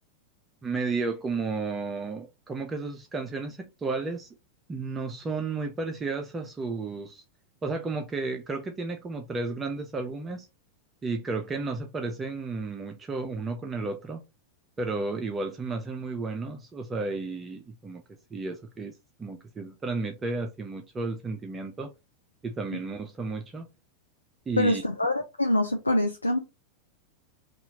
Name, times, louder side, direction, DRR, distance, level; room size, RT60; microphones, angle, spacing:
voice 1, 0.6-4.3 4.7-7.2 7.6-10.5 11.0-14.2 14.8-18.0 18.3-21.9 22.4-23.7 24.5-24.8, right 3 dB, 20° right, 0.4 m, -33 dB
voice 2, 24.6-26.4, left 1 dB, 85° left, 0.3 m, -25 dB
2.8 x 2.3 x 2.8 m
figure-of-eight pair, 90°, 0 cm